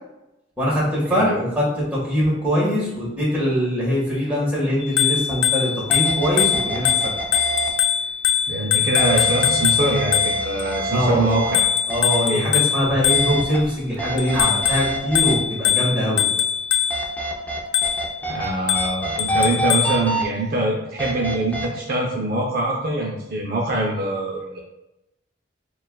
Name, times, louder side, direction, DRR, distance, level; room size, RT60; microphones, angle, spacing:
voice 1, 0.6-7.1 10.9-11.2 11.9-16.2, equal, 10° right, -7 dB, 1.5 m, -22 dB
Bicycle bell, 4.8-10.6 11.5-13.6 14.2-17.1 17.7-18.2 18.7-20.0, left 9 dB, 80° left, 0.4 m, -22 dB
sound 1, 5.3-5.4 5.9-7.7 9.0-11.6 11.9-12.2 13.1-13.6 14.0-15.3 16.9-18.5 18.7-20.2 21.0-21.7, right 2 dB, 10° left, 0.5 m, -27 dB
voice 2, 8.5-11.7 12.3-12.5 18.3-24.6, right 1 dB, 55° right, -1 dB, 0.6 m, -23 dB
6.4 x 2.4 x 2.2 m, 0.92 s
head